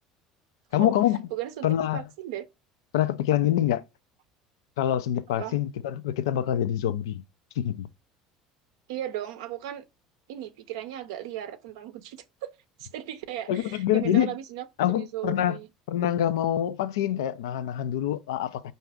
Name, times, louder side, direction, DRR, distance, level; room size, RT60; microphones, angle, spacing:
voice 1, 0.7-1.2 1.6-2.0 2.9-3.8 4.8-7.2 7.6-7.9 13.5-14.3 14.8-15.6 15.9-18.6, left 11 dB, 85° left, 0.4 m, -25 dB
voice 2, 1.3-1.7 1.9-2.5 5.4-5.6 8.9-9.8 10.3-12.5 12.8-14.7 15.0-15.7, right 12 dB, 80° right, 0.5 m, -36 dB
4.6 x 2.7 x 3.4 m
hypercardioid pair, 80°, 2 cm